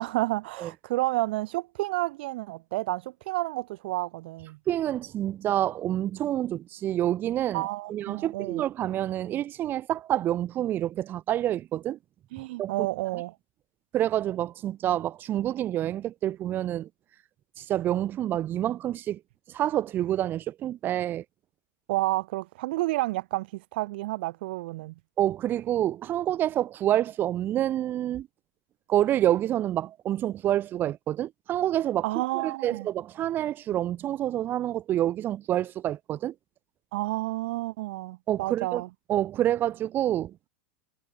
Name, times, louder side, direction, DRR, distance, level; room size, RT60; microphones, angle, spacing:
voice 1, 0.0-4.6 7.5-8.6 12.3-13.3 21.9-24.9 32.0-32.9 36.9-38.9, right 19 dB, 65° right, 2.1 m, -30 dB
voice 2, 4.7-7.6 7.9-12.0 12.6-12.7 13.9-16.9 17.6-19.2 19.5-21.2 25.2-28.3 28.9-32.1 32.4-36.3 38.3-38.8 39.1-40.3, right 12 dB, 35° right, 2.5 m, -27 dB
hypercardioid pair, 125°, 6 cm